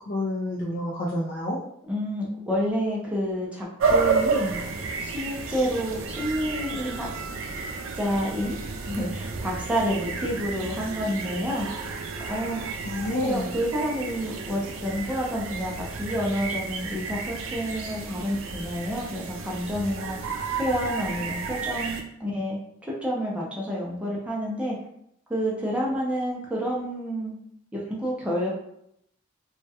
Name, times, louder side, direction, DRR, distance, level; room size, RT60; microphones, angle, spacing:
voice 1, 0.1-1.6 12.8-13.5, left 1 dB, 50° left, -4 dB, 0.4 m, -29 dB
voice 2, 1.9-4.6 5.0-7.1 7.9-8.6 8.8-11.7 12.3-12.6 13.0-20.2 20.6-22.6 22.8-24.8 25.3-27.3 27.7-28.5, equal, 5° right, -4 dB, 0.5 m, -29 dB
sound 1, 3.8-22.0, right 4 dB, 80° right, 0.4 m, -31 dB
2.3 x 2.1 x 2.7 m, 0.74 s
head